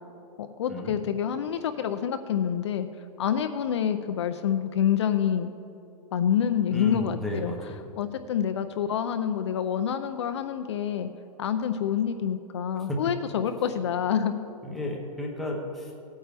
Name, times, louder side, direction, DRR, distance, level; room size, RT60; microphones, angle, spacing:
voice 1, 0.4-2.9 3.2-5.5 6.1-7.5 8.0-11.1 11.4-14.4, left 8 dB, 45° left, 8 dB, 0.5 m, -27 dB
voice 2, 6.7-7.8 12.9-13.0 14.6-15.9, left 1 dB, ahead, -2 dB, 0.6 m, -33 dB
17.0 x 8.9 x 3.4 m, 2.7 s
hypercardioid pair, 170°, 21 cm